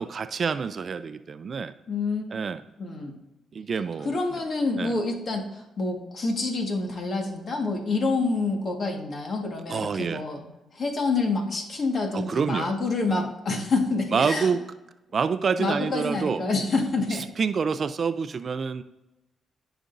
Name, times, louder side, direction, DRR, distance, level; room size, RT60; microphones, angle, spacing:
voice 1, 0.0-1.7 2.3-2.6 3.5-4.2 4.7-5.0 9.7-10.2 12.1-12.7 13.1-13.3 14.1-14.6 15.1-16.5 17.1-18.8, right 5 dB, 50° right, 12 dB, 0.4 m, -27 dB
voice 2, 1.9-2.2 2.8-3.1 4.0-14.5 15.6-17.2, left 3 dB, 55° left, 2 dB, 1.7 m, -27 dB
14.0 x 5.0 x 2.6 m, 0.97 s
cardioid pair, 70°, 0 cm